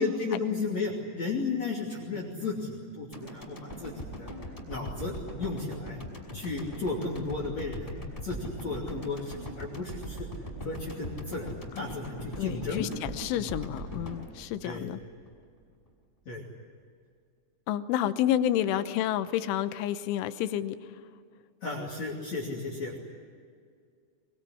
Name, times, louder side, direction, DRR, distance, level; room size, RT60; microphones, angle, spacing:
voice 1, 0.0-4.3 4.7-6.0 6.3-10.3 10.6-12.9 14.6-14.9 16.3-16.4 18.7-18.8 21.6-23.0, left 3 dB, 40° left, 0 dB, 3.5 m, -34 dB
sound 1, 3.1-15.3 15.7-15.8, equal, 5° left, 5.4 m, -40 dB
voice 2, 12.4-15.0 17.7-20.8, left 11 dB, 85° left, 11 dB, 3.4 m, -30 dB
22.5 x 22.5 x 10.0 m, 2.2 s
omnidirectional pair, 5.4 m